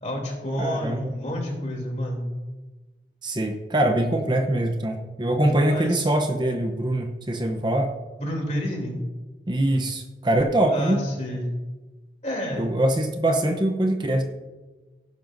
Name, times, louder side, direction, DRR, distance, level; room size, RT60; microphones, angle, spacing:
voice 1, 0.0-2.2 5.7-6.1 8.2-8.9 10.7-11.4 12.2-12.7, left 1 dB, 40° left, 0 dB, 2.9 m, -29 dB
voice 2, 0.6-1.1 3.2-7.9 9.5-11.0 12.6-14.2, right 1 dB, 25° right, 4 dB, 0.7 m, -23 dB
17.0 x 10.5 x 2.6 m, 1.2 s
head